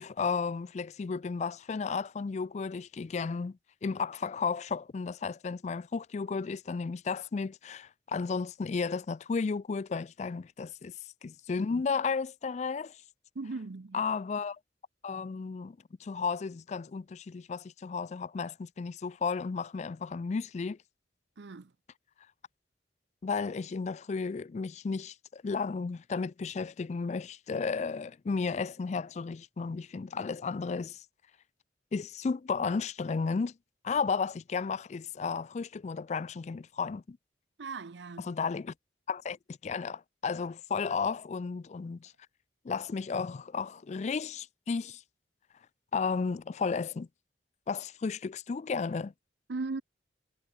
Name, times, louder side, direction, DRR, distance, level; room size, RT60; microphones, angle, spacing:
voice 1, 0.0-10.9 11.2-13.0 13.9-14.6 15.0-15.8 16.0-20.8 23.2-31.0 31.9-33.5 33.8-37.2 38.2-38.7 39.1-42.1 42.6-45.0 45.9-47.1 47.7-49.1, left 5 dB, 40° left, 0.3 m, -33 dB
voice 2, 13.3-14.1 21.4-21.7 37.6-38.3 49.5-49.8, right 3 dB, 80° right, 0.7 m, -38 dB
head